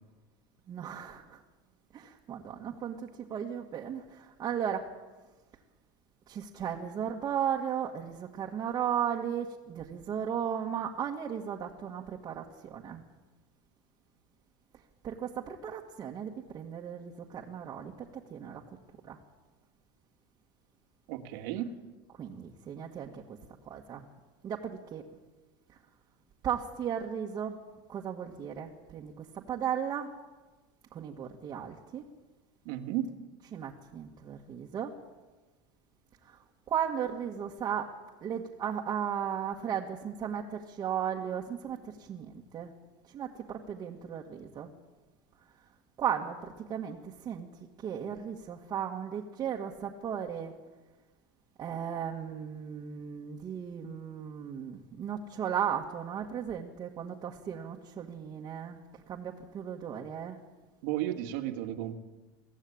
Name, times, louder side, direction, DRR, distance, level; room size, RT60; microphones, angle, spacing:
voice 1, 0.7-1.4 1.9-4.8 6.3-12.4 12.7-13.0 15.0-17.9 18.3-18.6 19.1-19.2 22.2-23.2 23.7-24.0 24.4-25.0 26.4-27.5 27.9-30.1 30.9-32.0 33.5-34.9 36.7-37.9 38.2-42.7 43.1-44.7 46.0-46.4 46.7-47.5 47.8-50.5 51.6-58.8 59.1-60.4, right 8 dB, 35° right, -2 dB, 2.0 m, -35 dB
voice 2, 21.1-21.7 32.7-33.1 60.8-62.0, right 13 dB, 65° right, 6 dB, 2.2 m, -33 dB
23.5 x 15.0 x 8.9 m, 1.2 s
supercardioid pair, 130°, 12 cm